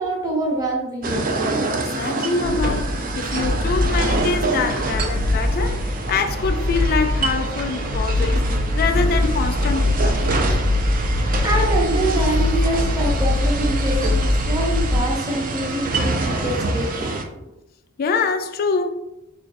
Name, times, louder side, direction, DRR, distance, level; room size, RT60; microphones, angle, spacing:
voice 1, 0.0-1.5 11.4-17.4, right 1 dB, 15° right, 0.7 m, -25 dB
sound 1, 1.0-17.2, right 3 dB, 40° right, 0.4 m, -27 dB
voice 2, 2.0-8.4 8.7-10.2 10.5-10.6 18.0-18.9, left 4 dB, 45° left, 0.3 m, -24 dB
sound 2, 2.4-15.0, left 1 dB, 75° right, 0.8 m, -22 dB
3.8 x 2.5 x 2.5 m
head